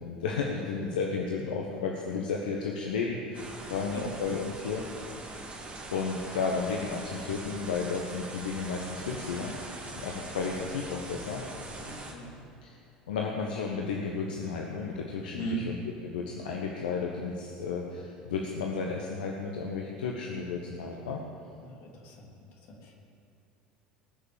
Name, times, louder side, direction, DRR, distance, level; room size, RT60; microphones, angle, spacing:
voice 1, 0.0-4.8 5.9-9.5 9.9-11.4 12.6-12.7 13.1-15.8 16.0-21.2, left 5 dB, 75° left, 0 dB, 1.3 m, -33 dB
sound 1, 3.3-12.1, right 2 dB, 25° right, 3.1 m, -42 dB
voice 2, 3.6-4.0 11.8-12.3 15.3-15.6 21.6-22.3 22.7-22.9, right 2 dB, 55° left, -1 dB, 3.2 m, -39 dB
20.0 x 6.9 x 7.3 m, 2.7 s
hypercardioid pair, 70°, 5 cm